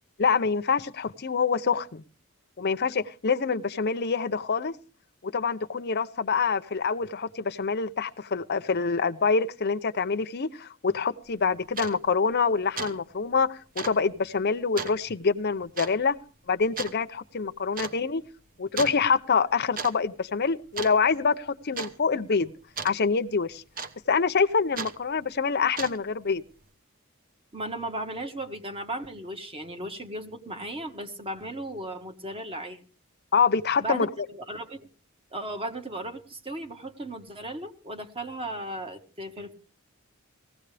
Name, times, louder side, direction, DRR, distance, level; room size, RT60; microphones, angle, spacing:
voice 1, 0.2-2.0 2.6-4.7 5.2-16.2 16.5-18.2 18.6-22.5 22.8-23.6 24.1-26.4 33.3-34.1, left 5 dB, 50° left, 0.7 m, -26 dB
sound 1, 11.3-11.4 11.7-12.0 12.3-12.5 12.8-13.0 13.2-13.3 13.8-14.0 14.8-15.0 15.8-16.0 16.8-17.0 17.8-18.0 18.8-19.0 19.6-19.9 20.2-20.5 20.8-21.3 21.8-21.9 22.8-23.0 23.8-24.2 24.8-25.0 25.6-26.1, right 5 dB, 40° right, 1.1 m, -35 dB
voice 2, 27.5-32.8 33.8-34.9 35.3-39.5, right 1 dB, 25° right, 1.5 m, -36 dB
19.0 x 16.0 x 3.4 m
head